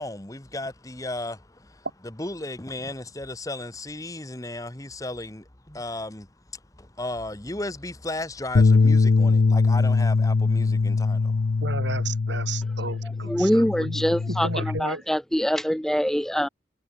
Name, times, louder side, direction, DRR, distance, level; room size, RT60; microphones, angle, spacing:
voice 1, 0.0-11.6, left 2 dB, 20° left, 1.3 m, -35 dB
Bass guitar, 8.5-14.8, left 4 dB, 65° left, 0.5 m, -22 dB
voice 2, 11.6-15.0, right 3 dB, 75° right, 3.5 m, -34 dB
voice 3, 13.3-16.5, equal, ahead, 0.5 m, -24 dB
head